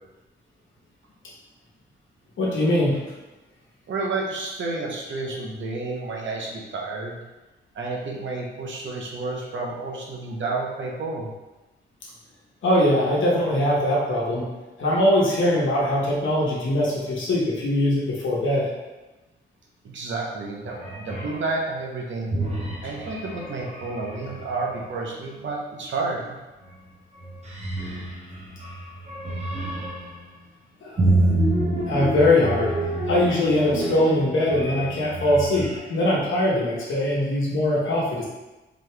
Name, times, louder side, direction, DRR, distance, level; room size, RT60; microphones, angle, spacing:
voice 1, 2.4-3.0 12.6-14.4 14.8-18.7 30.8-31.3 31.9-32.7 33.1-38.3, left 1 dB, 70° left, -5 dB, 1.0 m, -22 dB
voice 2, 3.9-7.2 7.7-11.3 19.8-22.3 22.8-26.4, right 3 dB, 65° right, -1 dB, 0.8 m, -30 dB
sound 1, 20.7-21.5 22.3-25.0 26.6-26.9 27.2-30.2 31.0-35.8, right 1 dB, 35° right, 0.9 m, -28 dB
4.1 x 2.9 x 3.3 m, 1.1 s
cardioid pair, 110°, 21 cm